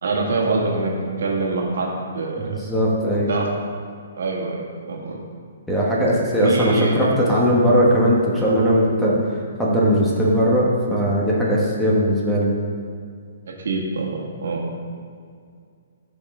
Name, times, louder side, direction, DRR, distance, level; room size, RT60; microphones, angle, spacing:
voice 1, 0.0-2.5 3.3-3.5 4.2-5.2 6.4-7.0 13.5-14.7, right 3 dB, 75° right, -1 dB, 1.9 m, -25 dB
voice 2, 2.5-3.3 5.7-9.2 9.6-12.5, equal, 5° left, -6 dB, 1.2 m, -19 dB
13.5 x 5.3 x 3.7 m, 2.2 s
hypercardioid pair, 160°, 0 cm